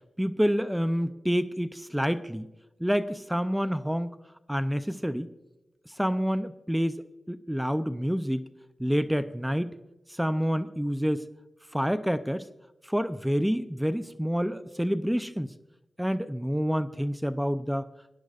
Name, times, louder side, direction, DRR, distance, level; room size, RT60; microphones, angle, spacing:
voice 1, 0.2-2.5 2.8-4.1 4.5-5.3 6.0-8.4 8.8-9.7 10.2-11.2 11.7-12.5 12.9-15.5 16.0-17.9, equal, 5° right, 12 dB, 0.4 m, -28 dB
18.0 x 10.5 x 2.4 m, 0.99 s
wide cardioid pair, 80°, 0 cm